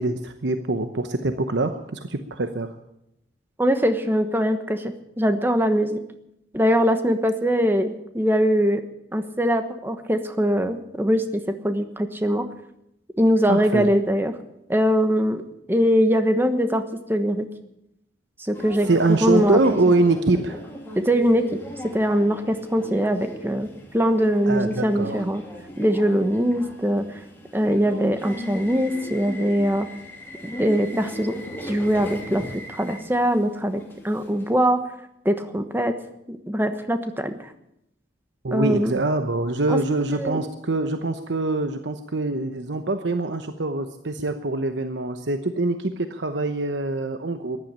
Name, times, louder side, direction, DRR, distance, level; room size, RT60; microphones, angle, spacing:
voice 1, 0.0-2.8 13.5-13.9 18.9-20.6 24.5-25.2 38.4-47.6, right 2 dB, 80° right, 8 dB, 1.0 m, -24 dB
voice 2, 3.6-6.0 6.5-8.8 9.1-12.5 13.2-14.3 14.7-15.4 15.7-16.8 17.1-17.5 18.4-19.6 20.9-21.6 21.8-25.4 25.8-27.2 27.5-29.9 30.4-31.3 31.6-34.8 35.2-36.0 36.3-37.5 38.5-38.9 39.7-39.8 40.2-40.4, equal, 10° right, 8 dB, 1.2 m, -22 dB
Subway metro underground, 18.5-34.5, equal, 10° left, 2.8 m, -38 dB
14.0 x 11.0 x 8.8 m, 0.80 s
head